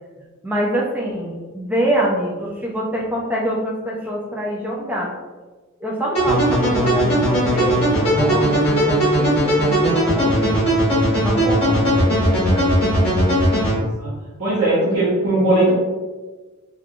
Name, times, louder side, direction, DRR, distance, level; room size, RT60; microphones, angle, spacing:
voice 1, 0.4-5.1 5.8-10.8 11.1-12.7, equal, 5° right, -3 dB, 0.4 m, -25 dB
sound 1, 6.1-13.8, equal, 25° left, 1.0 m, -18 dB
voice 2, 13.7-14.1 14.4-15.7, right 2 dB, 55° right, -11 dB, 0.8 m, -19 dB
3.0 x 2.4 x 2.4 m, 1.3 s
head